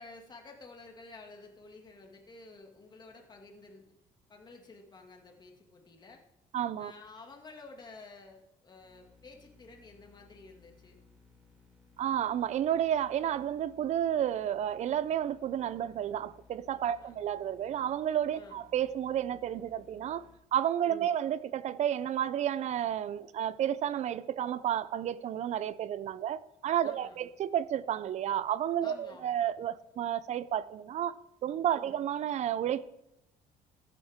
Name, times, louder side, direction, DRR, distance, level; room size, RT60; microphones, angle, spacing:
voice 1, 0.0-4.0 4.3-6.2 6.8-11.0 16.8-17.2 18.3-18.7 20.9-21.2 26.8-27.3 28.8-29.4 31.8-32.0, left 3 dB, 30° left, 2.2 m, -52 dB
voice 2, 6.5-6.9 12.0-32.9, right 10 dB, 55° right, 0.6 m, -31 dB
sound 1, 8.8-20.4, left 4 dB, ahead, 4.2 m, -62 dB
14.5 x 9.8 x 3.7 m
cardioid pair, 110°, 14 cm